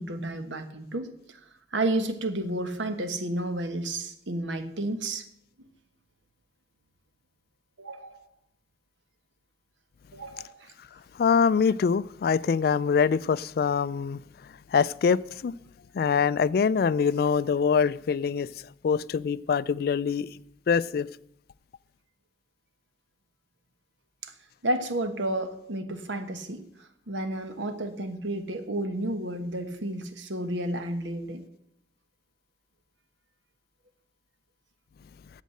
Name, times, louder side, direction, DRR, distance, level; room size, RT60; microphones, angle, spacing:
voice 1, 0.0-1.4 1.7-5.2 7.8-8.2 10.1-10.7 24.2-24.3 24.6-31.4, right 1 dB, 85° right, 1.2 m, -31 dB
voice 2, 11.2-14.2 14.7-15.5 15.9-18.5 18.8-20.3 20.7-21.1, left 6 dB, 55° left, 0.3 m, -24 dB
8.3 x 7.5 x 7.7 m
head